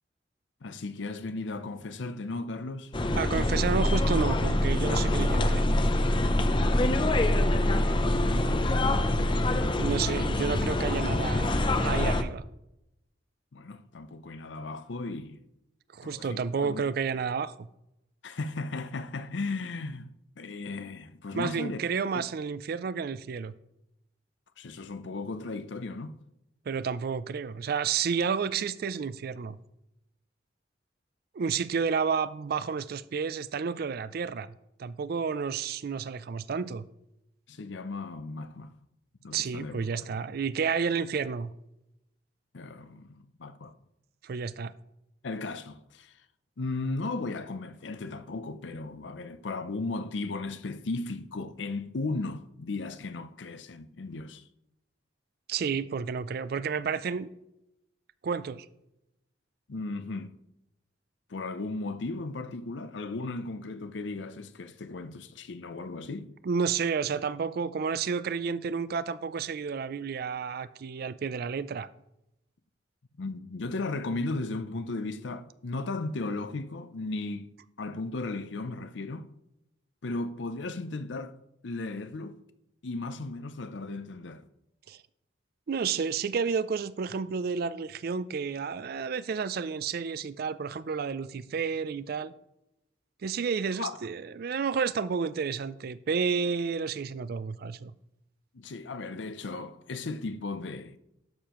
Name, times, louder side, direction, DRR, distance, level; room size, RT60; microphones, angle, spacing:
voice 1, 0.6-2.9 6.3-6.7 7.3-8.5 13.5-15.4 16.0-16.8 18.2-20.1 20.4-21.8 22.1-22.2 24.6-26.2 37.5-38.7 39.2-39.9 42.5-43.7 45.2-46.1 46.6-54.4 59.7-60.4 61.3-66.3 73.2-77.5 77.8-79.3 80.0-81.3 81.6-82.4 82.8-84.5 93.8-93.9 98.5-101.0, left 3 dB, 75° left, 0.6 m, -36 dB
sound 1, 2.9-12.2, left 1 dB, 25° left, 0.5 m, -25 dB
voice 2, 3.2-5.6 9.8-11.5 11.8-12.4 15.9-17.7 21.3-23.5 26.7-29.6 31.3-34.5 34.8-36.8 39.3-41.5 44.2-44.7 55.5-57.3 58.2-58.7 66.4-71.9 84.9-85.0 85.7-92.3 93.2-97.9, right 6 dB, 55° right, 0.4 m, -31 dB
12.0 x 6.7 x 3.0 m
head